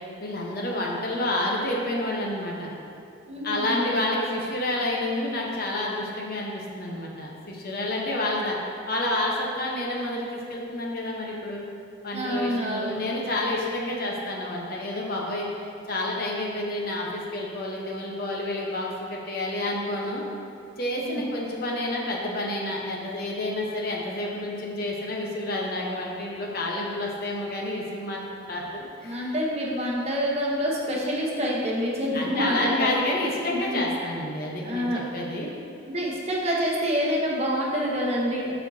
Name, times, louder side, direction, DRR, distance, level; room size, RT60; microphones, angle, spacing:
voice 1, 0.2-2.7 3.4-8.6 8.9-11.6 12.0-20.2 20.8-29.3 32.1-35.5, left 1 dB, 50° left, -2 dB, 1.0 m, -29 dB
voice 2, 3.3-3.9 12.1-13.0 21.0-21.3 29.0-32.9 33.7-33.8 34.6-35.0 35.9-38.5, equal, 30° right, -3 dB, 1.0 m, -27 dB
12.5 x 4.4 x 2.8 m, 2.4 s
head